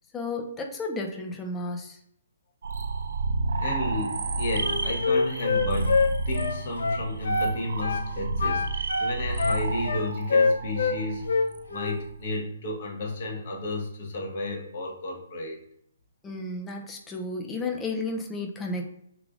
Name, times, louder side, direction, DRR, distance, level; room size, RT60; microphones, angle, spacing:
voice 1, 0.1-2.0 16.2-18.8, left 2 dB, 10° left, 1 dB, 0.4 m, -32 dB
Ambience Dark Drone, 2.6-12.3, right 3 dB, 75° right, 0.3 m, -31 dB
voice 2, 3.6-15.6, left 1 dB, 45° left, -1 dB, 1.1 m, -32 dB
Wind instrument woodwind instrument, 4.6-7.6 7.8-8.1 8.4-11.0 11.3-12.0, left 4 dB, 80° left, 0.4 m, -25 dB
3.6 x 3.2 x 2.4 m, 0.70 s
hypercardioid pair, 165°, 0 cm